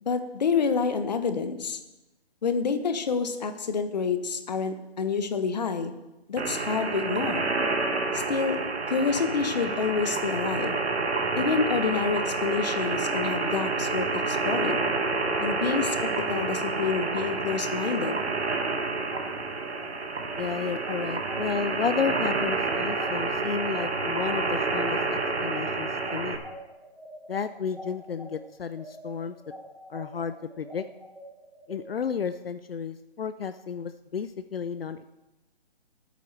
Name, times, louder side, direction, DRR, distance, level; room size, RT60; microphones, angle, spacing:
voice 1, 0.0-1.8 2.4-5.9 6.3-7.5 8.3-8.6 8.9-10.8 11.4-14.8 15.4-16.0 16.3-18.2, left 5 dB, 40° left, 8 dB, 1.1 m, -28 dB
sound 1, 6.4-26.4, right 3 dB, 85° right, 1.9 m, -29 dB
sound 2, 19.1-28.3 28.7-31.8, equal, ahead, 1.8 m, -45 dB
voice 2, 20.4-26.4 27.3-29.4 29.9-30.8 31.7-35.1, left 6 dB, 65° left, 11 dB, 0.6 m, -32 dB
19.0 x 9.1 x 3.3 m, 0.98 s
hypercardioid pair, 165°, 32 cm